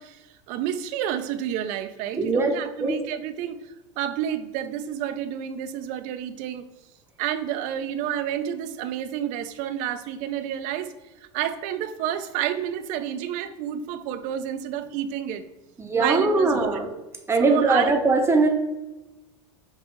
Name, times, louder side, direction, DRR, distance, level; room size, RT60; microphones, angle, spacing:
voice 1, 0.0-6.6 7.2-10.9 11.2-15.4 16.0-16.8 17.4-17.9, right 10 dB, 55° right, 11 dB, 0.5 m, -30 dB
voice 2, 2.2-2.5 2.8-3.0 15.8-16.9 17.3-18.5, right 3 dB, 15° right, 4 dB, 0.8 m, -21 dB
5.5 x 2.4 x 3.0 m, 1.0 s
hypercardioid pair, 90°, 16 cm